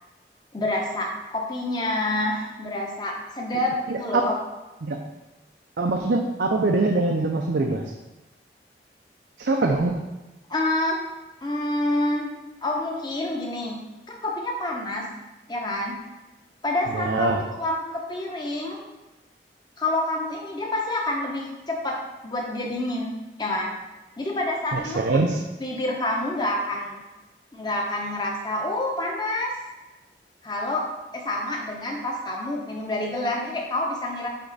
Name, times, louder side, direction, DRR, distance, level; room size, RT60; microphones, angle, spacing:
voice 1, 0.5-4.4 10.5-11.0 11.4-12.3 12.6-13.8 14.2-15.1 15.5-16.0 16.6-18.8 19.8-23.8 24.2-25.3 25.6-27.0 27.5-29.5 30.4-30.8 31.1-34.3, left 1 dB, 25° left, -1 dB, 0.9 m, -28 dB
voice 2, 3.9-4.3 4.8-5.0 5.8-7.8 9.4-9.9 16.9-17.4 24.7-25.4, right 3 dB, 70° right, 2 dB, 0.5 m, -23 dB
7.9 x 3.3 x 4.0 m, 1.1 s
head